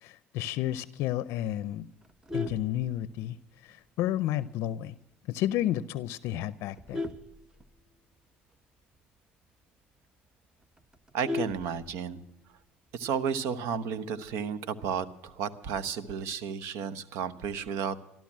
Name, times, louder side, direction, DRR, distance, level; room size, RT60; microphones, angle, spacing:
voice 1, 0.0-1.9 2.3-3.4 3.6-4.9 5.3-7.0, left 13 dB, 70° left, 16 dB, 0.5 m, -31 dB
Vehicle horn car horn honking, 2.0-3.5 4.0-4.2 4.5-4.6 5.0-5.1 5.4-5.8 6.4-8.2 8.6-8.7 8.9-9.0 9.4-9.5 9.9-10.0 10.3-12.3 13.5-13.9, left 3 dB, 15° right, 0.9 m, -37 dB
voice 2, 11.1-12.2 12.9-18.0, right 7 dB, 75° right, 14 dB, 0.9 m, -32 dB
13.5 x 12.5 x 7.3 m, 0.85 s
cardioid pair, 110°, 5 cm